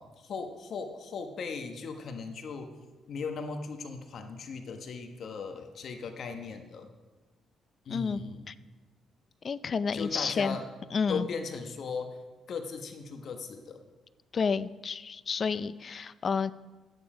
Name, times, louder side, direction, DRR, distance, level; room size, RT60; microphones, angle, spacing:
voice 1, 0.0-2.7 3.1-6.9 7.8-8.5 9.9-10.7 11.1-12.2 12.5-13.8, left 5 dB, 60° left, 5 dB, 1.2 m, -38 dB
voice 2, 7.9-8.2 8.5-8.6 9.4-10.6 10.9-11.3 14.3-16.5, left 5 dB, 45° left, 16 dB, 0.4 m, -30 dB
12.5 x 9.4 x 5.0 m, 1.2 s
cardioid pair, 90°, 0 cm